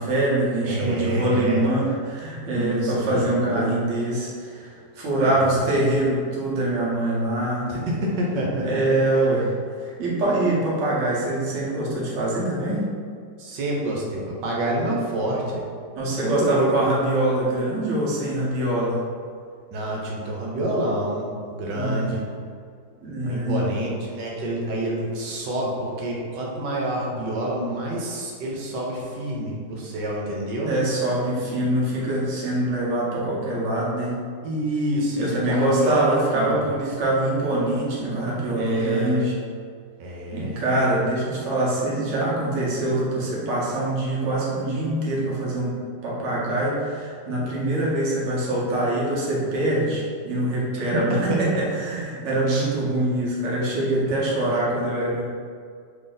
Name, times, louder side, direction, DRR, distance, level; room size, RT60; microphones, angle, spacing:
voice 1, 0.0-7.7 8.6-12.9 15.9-19.0 21.7-22.1 23.0-23.6 30.6-34.2 35.2-39.3 40.3-45.7 46.0-55.2, right 1 dB, 55° right, -6 dB, 1.1 m, -24 dB
voice 2, 0.6-1.6 2.5-3.8 5.3-5.6 7.7-8.7 13.4-15.6 16.2-16.7 19.7-22.2 23.2-30.7 34.4-36.7 38.5-39.3 40.0-40.6 50.9-51.4 52.5-52.7, right 1 dB, 85° right, -3 dB, 1.3 m, -27 dB
3.2 x 2.6 x 3.8 m, 2.1 s
omnidirectional pair, 1.8 m